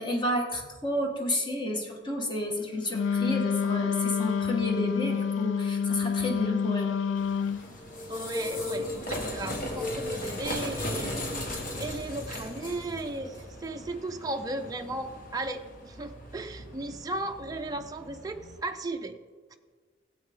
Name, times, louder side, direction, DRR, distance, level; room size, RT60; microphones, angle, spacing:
voice 1, 0.0-7.0, left 1 dB, 25° left, 1 dB, 1.5 m, -31 dB
Wind instrument woodwind instrument, 2.9-7.6, left 6 dB, 90° left, 0.3 m, -28 dB
sound 1, 7.2-18.6, left 1 dB, 50° left, 1.4 m, -37 dB
voice 2, 8.1-11.2 11.8-19.2, right 2 dB, 20° right, 4 dB, 0.4 m, -35 dB
15.0 x 8.1 x 3.6 m, 1.5 s
head